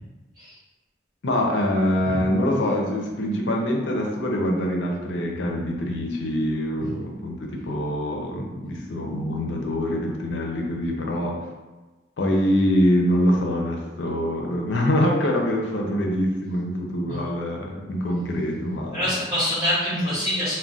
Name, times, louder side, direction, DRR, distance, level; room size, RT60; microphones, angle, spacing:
voice 1, 1.2-11.4 12.2-19.1, equal, 90° left, 0 dB, 0.5 m, -24 dB
voice 2, 18.9-20.6, equal, 25° right, -15 dB, 0.9 m, -25 dB
2.3 x 2.2 x 3.8 m, 1.2 s
head